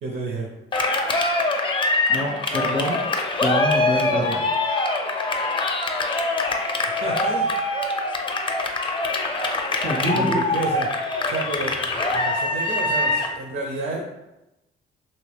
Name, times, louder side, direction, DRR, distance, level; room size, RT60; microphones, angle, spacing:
voice 1, 0.0-0.5 7.0-7.5 10.1-10.9 11.2-11.8 12.1-14.0, right 2 dB, 65° right, 0 dB, 0.6 m, -30 dB
Cheering, 0.7-13.4, left 2 dB, 25° left, 0.5 m, -24 dB
voice 2, 2.1-3.0 3.4-4.4 9.8-10.4, equal, 80° right, -3 dB, 1.4 m, -25 dB
2.9 x 2.9 x 3.3 m, 0.95 s
cardioid pair, 90°, 20 cm